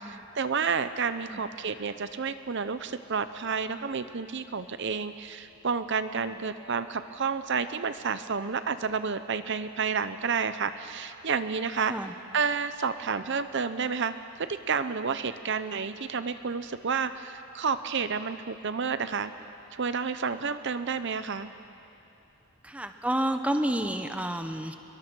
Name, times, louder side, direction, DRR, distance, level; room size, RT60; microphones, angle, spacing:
voice 1, 0.0-11.9 12.3-14.1 14.4-19.3 19.7-21.5, right 5 dB, 55° right, 11 dB, 0.7 m, -30 dB
voice 2, 22.6-24.8, right 1 dB, 5° right, 6 dB, 0.8 m, -30 dB
29.0 x 23.0 x 6.2 m, 2.8 s
head